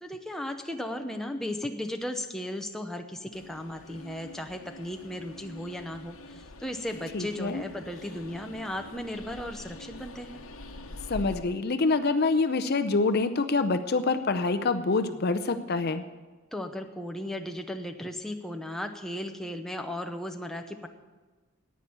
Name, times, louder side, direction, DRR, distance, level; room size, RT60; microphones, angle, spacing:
voice 1, 0.0-10.4 16.5-20.9, left 1 dB, ahead, 4 dB, 0.7 m, -36 dB
Train, 3.3-11.4, left 2 dB, 75° left, 1.1 m, -45 dB
voice 2, 7.1-7.6 11.1-16.0, left 3 dB, 50° left, 9 dB, 0.6 m, -26 dB
10.5 x 9.4 x 8.6 m, 1.3 s
head